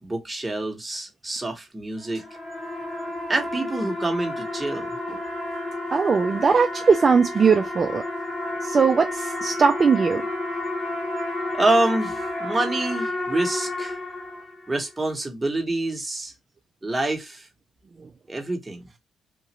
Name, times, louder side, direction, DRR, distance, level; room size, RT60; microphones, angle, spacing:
voice 1, 0.0-2.2 3.3-4.9 11.5-14.0 14.7-16.3 16.8-17.4 18.3-18.8, right 2 dB, 15° right, 1.1 m, -26 dB
sound 1, 2.0-14.8, left 2 dB, 25° left, 1.2 m, -31 dB
voice 2, 5.9-8.0 8.6-10.2, right 5 dB, 40° right, 0.4 m, -19 dB
3.0 x 2.4 x 2.9 m
cardioid pair, 90°, 0 cm